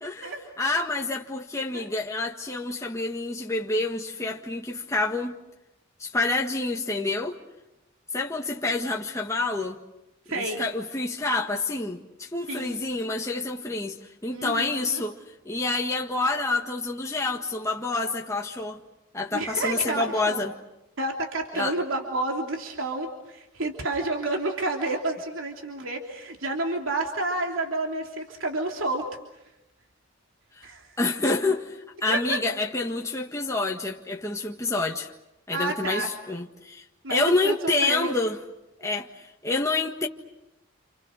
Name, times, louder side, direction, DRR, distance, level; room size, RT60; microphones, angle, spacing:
voice 1, 0.0-0.3 0.6-5.4 6.0-7.4 8.1-9.8 10.3-15.2 15.4-18.8 19.1-20.5 21.5-21.8 30.5-30.7 31.0-31.8 32.0-35.1 35.5-36.8 37.1-38.4 38.8-40.1, left 3 dB, 15° left, 1.6 m, -28 dB
voice 2, 10.3-10.6 12.5-12.7 14.3-15.0 19.3-20.4 21.0-29.1 30.6-31.0 32.1-32.4 35.5-36.1 37.0-38.1, right 2 dB, 75° right, 3.3 m, -30 dB
30.0 x 29.0 x 6.5 m
head